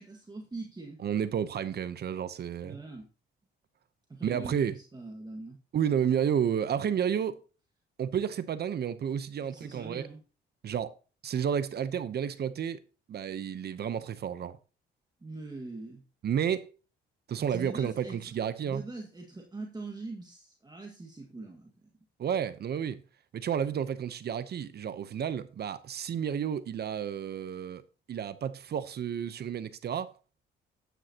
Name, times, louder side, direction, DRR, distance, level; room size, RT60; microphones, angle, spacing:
voice 1, 0.0-1.0 2.6-3.1 4.1-5.6 9.4-10.2 15.2-16.0 17.3-18.3 18.6-21.9, right 2 dB, 20° right, 1.8 m, -43 dB
voice 2, 1.0-2.8 4.2-4.8 5.7-7.4 8.0-10.0 10.6-11.0 11.2-12.8 13.1-14.6 16.2-16.7 17.3-18.8 22.2-23.0 23.3-27.8 28.1-30.1, right 8 dB, 55° right, 0.8 m, -31 dB
12.0 x 9.3 x 2.9 m
cardioid pair, 90°, 20 cm